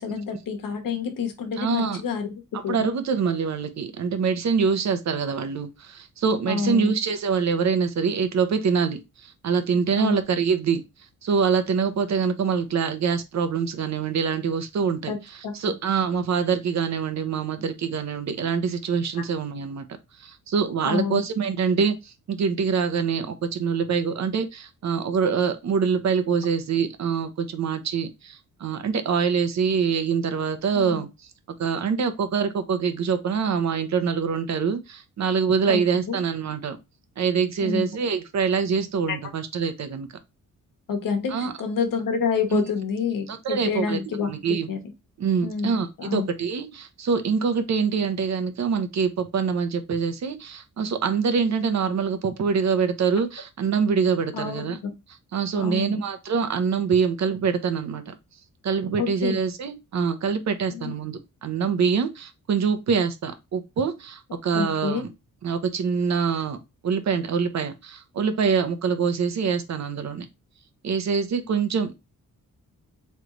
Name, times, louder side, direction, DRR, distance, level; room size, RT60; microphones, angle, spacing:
voice 1, 0.0-2.3 2.6-2.8 6.5-6.9 9.9-10.2 15.1-15.2 15.4-15.6 20.8-21.2 30.7-31.0 35.7-35.8 36.1-36.2 37.6-37.9 39.1-39.2 40.9-44.3 44.7-44.8 45.4-46.3 54.3-54.9 55.5-56.0 59.0-59.4 60.7-60.9 64.5-65.0, left 6 dB, 80° left, 1.2 m, -28 dB
voice 2, 1.6-2.0 2.5-10.8 11.2-19.8 20.2-31.1 31.6-36.8 37.2-40.1 41.3-41.5 42.5-42.6 43.3-44.7 45.2-54.8 55.3-58.1 58.6-65.1 65.4-70.3 70.8-71.9, right 6 dB, 55° right, 0.8 m, -25 dB
3.8 x 3.3 x 3.1 m
wide cardioid pair, 140°, 32 cm